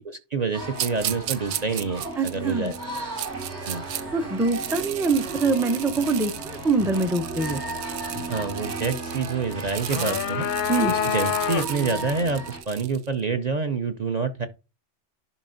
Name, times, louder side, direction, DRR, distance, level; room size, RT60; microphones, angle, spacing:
voice 1, 0.1-2.7 3.7-3.8 8.3-10.5 10.9-14.5, right 4 dB, 45° right, 0.6 m, -27 dB
sound 1, 0.5-12.6, right 2 dB, 65° right, 2.6 m, -35 dB
sound 2, 0.7-4.0 4.4-13.1, right 11 dB, 85° right, 1.0 m, -35 dB
voice 2, 2.2-2.7 4.1-7.6 10.7-10.9, right 3 dB, 5° right, 0.3 m, -24 dB
sound 3, 9.6-12.0, left 9 dB, 60° left, 0.6 m, -27 dB
11.0 x 5.1 x 2.5 m
omnidirectional pair, 1.2 m